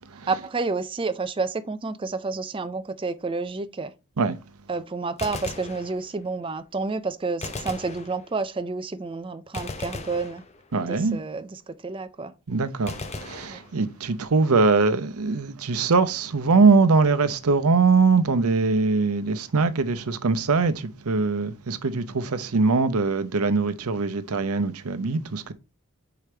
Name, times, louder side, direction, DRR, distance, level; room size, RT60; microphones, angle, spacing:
voice 1, 0.3-3.9 4.7-10.4 10.8-12.3 13.5-13.6, right 4 dB, 25° right, 0.4 m, -30 dB
Gunshot gunfire, 5.1-6.4 7.4-8.6 9.5-11.0 12.9-14.2, left 3 dB, 30° left, 0.7 m, -37 dB
voice 2, 10.7-11.2 12.5-25.5, right 4 dB, 90° right, 0.7 m, -22 dB
5.1 x 4.8 x 4.3 m
head